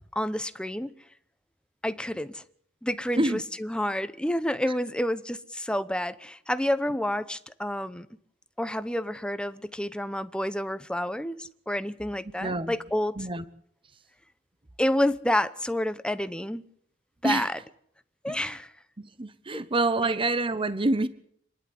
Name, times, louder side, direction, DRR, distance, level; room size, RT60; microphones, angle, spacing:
voice 1, 0.1-0.9 1.8-2.4 2.8-8.1 8.6-13.2 14.8-16.6 17.2-17.6 18.2-18.7 19.5-19.6, left 1 dB, 5° left, 0.9 m, -29 dB
voice 2, 12.4-12.7 13.2-13.4 17.2-17.5 18.3-18.5 19.0-21.1, right 2 dB, 25° right, 0.9 m, -27 dB
26.0 x 11.0 x 9.7 m
head